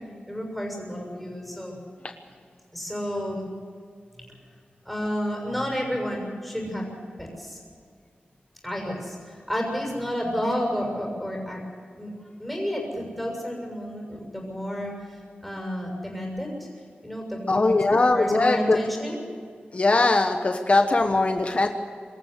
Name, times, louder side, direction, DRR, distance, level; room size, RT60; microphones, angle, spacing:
voice 1, 0.3-1.8 2.7-3.5 4.2-4.3 4.8-6.8 7.2-7.6 8.6-11.6 12.0-12.1 12.4-16.7 17.0-19.2, equal, ahead, 0 dB, 6.8 m, -31 dB
voice 2, 17.5-18.8 19.7-21.7, left 2 dB, 35° left, 5 dB, 1.3 m, -20 dB
25.5 x 14.0 x 8.1 m, 2.2 s
wide cardioid pair, 120°, 4 cm